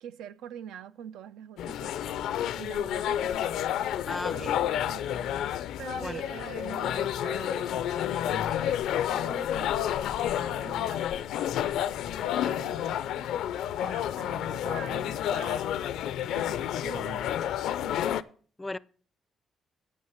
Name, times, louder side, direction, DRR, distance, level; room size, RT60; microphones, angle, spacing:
voice 1, 0.0-4.0 4.3-5.3 5.8-11.7 12.3-13.3 13.8-18.0, right 9 dB, 90° right, 0.5 m, -45 dB
sound 1, 1.6-18.2, left 11 dB, 85° left, 0.4 m, -30 dB
voice 2, 4.1-4.7 6.0-6.2 12.4-12.6 18.6-18.8, left 2 dB, 15° left, 0.4 m, -36 dB
9.5 x 5.8 x 7.0 m
cardioid pair, 90°, 0 cm